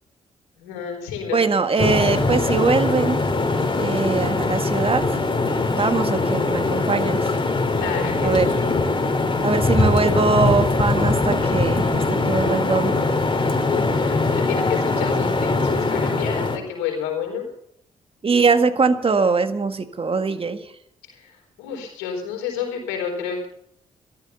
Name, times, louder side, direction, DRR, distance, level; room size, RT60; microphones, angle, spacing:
voice 1, 0.6-1.5 7.7-8.7 9.7-9.8 13.7-17.5 21.1-23.5, left 7 dB, 90° left, 0 dB, 4.0 m, -30 dB
voice 2, 1.3-3.2 3.8-5.0 5.4-7.3 8.2-8.5 9.4-11.9 12.3-12.9 18.2-20.7, right 4 dB, 40° right, 9 dB, 1.8 m, -21 dB
sound 1, 1.8-16.6, left 3 dB, 35° left, 3.0 m, -21 dB
14.0 x 12.5 x 7.0 m, 0.71 s
hypercardioid pair, 45°, 15 cm